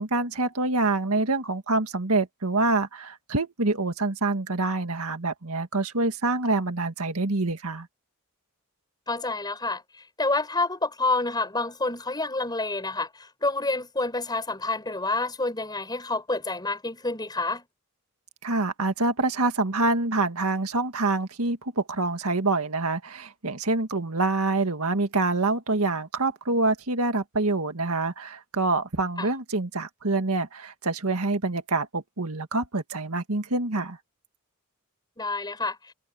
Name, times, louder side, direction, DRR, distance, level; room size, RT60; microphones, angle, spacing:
voice 1, 0.0-7.9 18.4-34.0, right 2 dB, 80° right, 1.9 m, -26 dB
voice 2, 9.1-9.8 10.2-17.7 29.2-29.3 35.2-35.9, left 3 dB, 20° left, 5.9 m, -28 dB
head